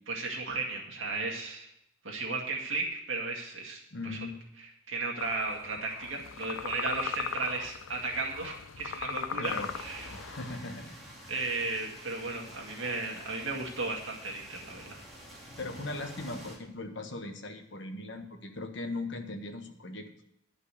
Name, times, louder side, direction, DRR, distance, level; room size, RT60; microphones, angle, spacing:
voice 1, 0.1-1.7 2.0-4.2 4.6-10.1 11.3-15.0, right 3 dB, 85° right, -1 dB, 2.1 m, -35 dB
voice 2, 3.9-4.4 9.3-9.7 10.1-11.0 15.6-20.1, left 2 dB, 65° left, 5 dB, 1.4 m, -39 dB
sound 1, 5.2-10.6, left 6 dB, 85° left, 0.5 m, -39 dB
sound 2, 9.4-16.6, equal, ahead, 2.7 m, -49 dB
11.0 x 5.5 x 8.4 m, 0.79 s
head